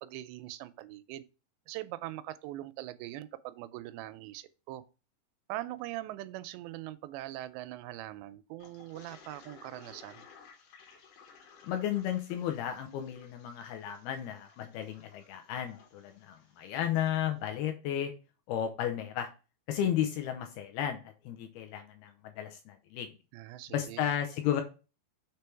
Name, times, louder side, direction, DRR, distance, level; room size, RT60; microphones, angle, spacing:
voice 1, 0.0-1.2 1.7-4.8 5.5-10.3 23.3-24.0, right 15 dB, 85° right, 2.7 m, -42 dB
Toilet flush, 8.6-17.2, left 6 dB, 65° left, 2.2 m, -57 dB
voice 2, 11.6-18.1 18.5-19.3 19.7-23.1 23.7-24.6, left 10 dB, 85° left, 2.3 m, -33 dB
6.8 x 3.3 x 4.5 m
omnidirectional pair, 4.9 m